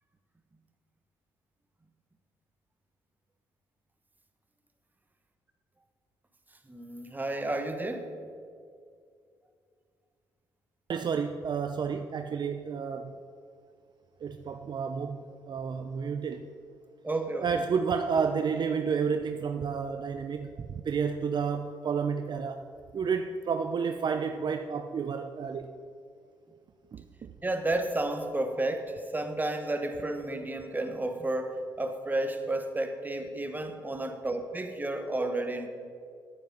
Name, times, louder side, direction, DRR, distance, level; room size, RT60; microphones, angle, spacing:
voice 1, 6.7-8.3 17.0-17.5 27.4-35.7, right 2 dB, 20° right, 6 dB, 1.4 m, -32 dB
voice 2, 10.9-13.1 14.2-16.5 17.4-22.6 22.9-25.7 26.9-27.3, right 6 dB, 50° right, 7 dB, 0.6 m, -31 dB
10.0 x 9.0 x 5.4 m, 2.2 s
supercardioid pair, 55°, 10 cm